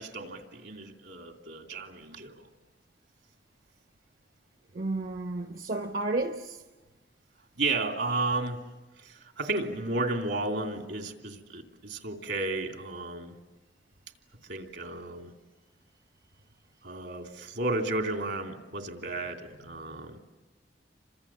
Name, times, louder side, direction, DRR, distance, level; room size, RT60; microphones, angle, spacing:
voice 1, 0.0-2.5 7.6-8.6 9.0-13.3 14.5-15.3 16.8-20.2, right 2 dB, 75° right, 3.0 m, -33 dB
voice 2, 4.7-6.6 8.1-8.2 19.7-19.8, right 2 dB, 55° right, 1.0 m, -32 dB
29.5 x 26.0 x 7.4 m
head